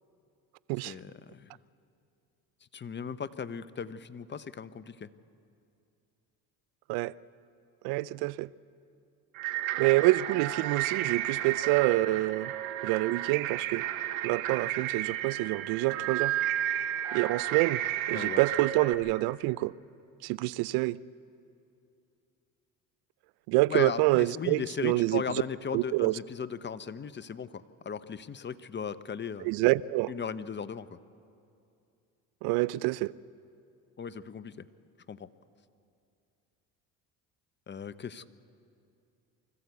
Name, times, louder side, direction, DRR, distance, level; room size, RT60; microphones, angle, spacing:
voice 1, 0.8-1.5 2.7-5.1 18.1-18.4 23.7-29.5 30.1-30.9 34.0-34.7 35.1-35.3 37.7-38.3, left 6 dB, 25° left, 0.8 m, -37 dB
voice 2, 7.8-8.5 9.8-12.5 12.8-13.8 14.2-16.4 17.1-17.8 18.1-19.7 20.2-21.0 23.5-25.2 25.7-26.1 29.4-30.1 32.4-33.1, right 19 dB, 75° right, 0.6 m, -27 dB
sound 1, 9.3-18.9, right 12 dB, 90° right, 1.2 m, -32 dB
24.5 x 14.5 x 8.2 m
supercardioid pair, 70°, 40 cm